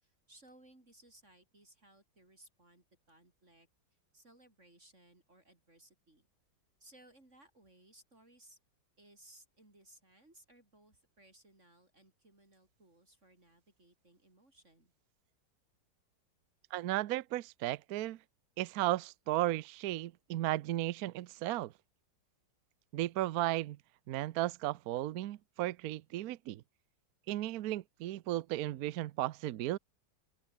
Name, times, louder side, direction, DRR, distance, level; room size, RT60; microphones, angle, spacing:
voice 1, 0.0-3.7 4.1-6.3 6.8-8.6 9.0-14.9, right 1 dB, 40° right, 5.7 m, -62 dB
voice 2, 16.7-18.2 18.6-21.7 22.9-23.8 24.1-26.6 27.3-29.8, right 15 dB, 65° right, 1.0 m, -35 dB
open air
omnidirectional pair, 2.0 m